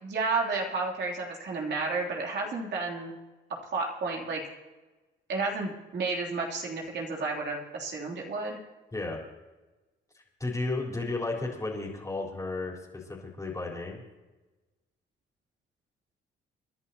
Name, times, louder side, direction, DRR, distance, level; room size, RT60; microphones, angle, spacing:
voice 1, 0.0-3.1 3.7-4.4 5.3-8.6, right 3 dB, 60° right, -1 dB, 3.2 m, -31 dB
voice 2, 8.9-9.2 10.1-14.0, left 2 dB, 15° left, -2 dB, 4.2 m, -33 dB
29.0 x 11.0 x 2.9 m, 1.2 s
cardioid pair, 90°, 20 cm